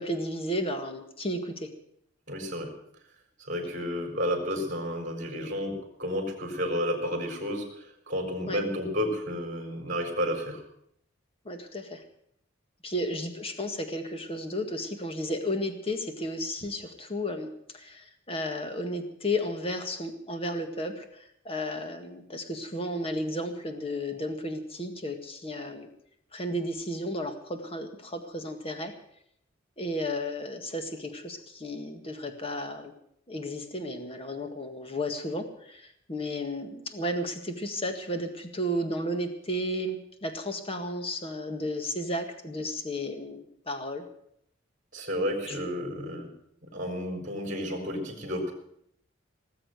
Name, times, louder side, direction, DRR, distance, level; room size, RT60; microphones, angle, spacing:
voice 1, 0.0-1.7 8.5-8.6 11.5-12.0 12.8-17.5 17.7-25.9 26.3-28.9 29.8-32.9 33.3-44.0 45.5-45.6, left 1 dB, 30° left, 6 dB, 1.8 m, -33 dB
voice 2, 2.3-2.7 3.4-5.7 6.0-10.6 44.9-46.3 46.7-48.5, equal, 40° right, 3 dB, 4.2 m, -31 dB
19.0 x 7.7 x 9.2 m, 0.71 s
head